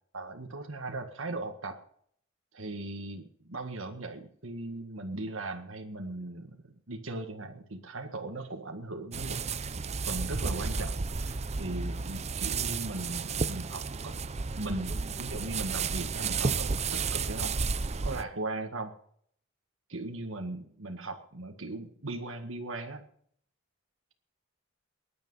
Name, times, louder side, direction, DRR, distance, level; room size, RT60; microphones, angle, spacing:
voice 1, 0.1-1.8 2.5-9.5 9.8-14.2 14.5-17.5 18.0-18.9 19.9-23.0, right 2 dB, 70° right, 3 dB, 1.8 m, -38 dB
sound 1, 9.1-18.2, right 4 dB, 30° right, 0.6 m, -32 dB
21.0 x 10.5 x 5.6 m, 0.62 s
head